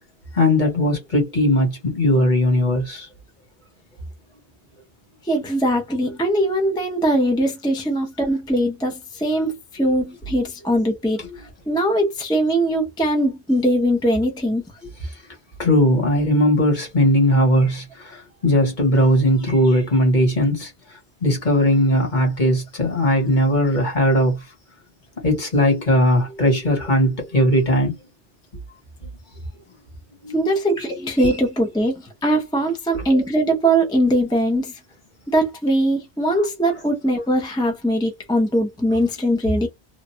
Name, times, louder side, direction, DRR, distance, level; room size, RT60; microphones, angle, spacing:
voice 1, 0.4-3.1 15.6-17.8 18.4-20.7 21.2-24.3 25.2-27.9 30.2-30.3 31.2-31.3, left 1 dB, 45° left, 1.5 m, -18 dB
voice 2, 5.3-11.2 11.7-14.6 30.3-31.9 32.2-34.7 35.3-39.7, right 1 dB, 5° left, 0.6 m, -21 dB
3.2 x 2.4 x 2.7 m
omnidirectional pair, 1.2 m